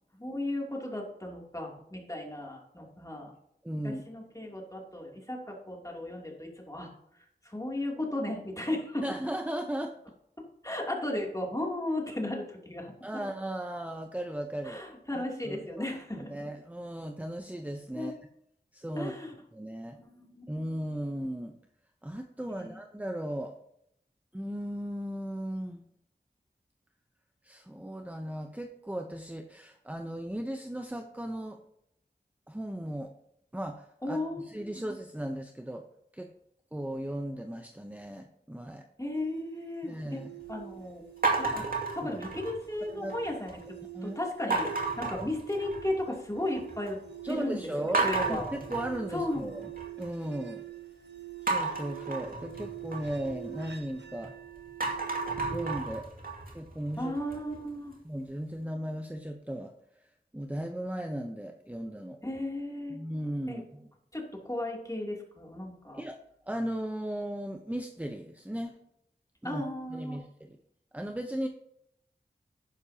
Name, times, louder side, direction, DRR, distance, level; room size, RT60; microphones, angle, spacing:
voice 1, 0.1-3.3 3.8-6.9 7.4-9.0 10.6-13.2 14.6-16.3 17.9-18.1 18.9-19.3 19.9-20.4 22.6-22.8 34.0-34.4 34.7-34.8 39.0-40.2 40.5-41.1 41.3-43.5 44.0-44.7 45.0-47.0 47.3-48.4 49.1-49.5 57.0-57.9 62.2-63.0 63.5-63.6 64.1-66.0 69.4-70.2, left 1 dB, 20° left, -1 dB, 3.0 m, -35 dB
voice 2, 3.6-4.0 9.0-10.0 13.0-14.8 15.1-15.8 16.3-18.1 18.7-19.1 19.5-20.0 20.5-21.6 22.0-23.6 24.3-25.8 27.4-31.6 32.5-33.1 33.5-34.2 34.4-35.9 36.1-36.3 36.7-38.9 39.8-40.3 42.0-42.1 42.8-43.1 43.9-44.2 44.5-44.6 47.2-49.7 50.0-50.6 51.4-54.3 55.5-56.1 56.5-57.1 58.0-62.2 62.9-63.9 65.9-66.2 66.5-68.8 69.4-69.6 69.9-70.6 70.9-71.5, right 1 dB, 10° right, 5 dB, 0.8 m, -36 dB
sound 1, 39.1-55.8, right 14 dB, 80° right, 1.1 m, -46 dB
sound 2, 41.2-42.7 43.1-43.6 44.5-46.0 46.4-46.9 47.3-47.4 47.9-50.1 51.5-54.3 54.7-57.6, right 3 dB, 55° right, 2.4 m, -33 dB
11.5 x 9.9 x 2.9 m, 0.74 s
wide cardioid pair, 50°, 18 cm